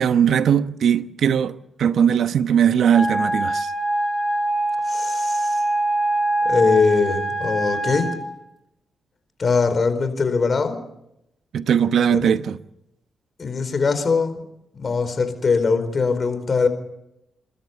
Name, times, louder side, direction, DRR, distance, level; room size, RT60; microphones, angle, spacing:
voice 1, 0.0-3.7 11.5-12.6, right 8 dB, 75° right, 0.9 m, -19 dB
Wind instrument woodwind instrument, 2.9-8.3, right 1 dB, 30° right, 7.2 m, -23 dB
voice 2, 4.9-5.6 6.4-8.1 9.4-10.8 12.1-12.3 13.4-14.4 14.7-16.7, left 4 dB, 50° left, 4.5 m, -21 dB
28.5 x 13.5 x 8.3 m
supercardioid pair, 55°, 0 cm